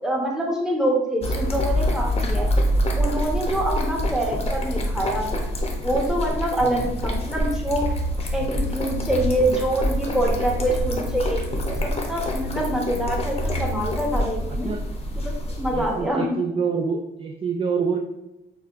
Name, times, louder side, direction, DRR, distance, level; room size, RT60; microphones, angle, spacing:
voice 1, 0.0-2.5 3.0-5.4 5.8-7.9 8.3-14.7 15.2-16.3, right 1 dB, 5° right, -1 dB, 0.9 m, -25 dB
sound 1, 1.2-16.0, equal, 30° left, 0.7 m, -26 dB
voice 2, 6.6-6.9 10.8-11.1 14.6-14.8 15.7-18.0, right 5 dB, 30° right, 2 dB, 0.3 m, -27 dB
5.5 x 2.2 x 2.4 m, 0.96 s
cardioid pair, 90°, 20 cm